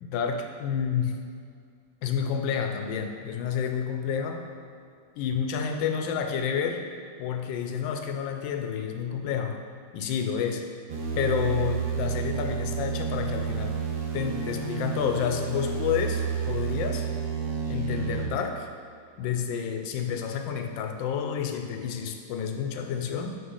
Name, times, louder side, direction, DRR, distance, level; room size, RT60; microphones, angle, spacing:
voice 1, 0.0-1.2 2.0-4.4 5.2-6.9 7.2-9.6 9.9-10.6 11.2-13.8 14.1-17.1 17.7-18.7 19.2-23.4, left 7 dB, 75° left, 5 dB, 1.2 m, -29 dB
sound 1, 10.9-18.3, right 6 dB, 70° right, 1.4 m, -30 dB
7.8 x 3.2 x 5.4 m, 2.2 s
omnidirectional pair, 2.3 m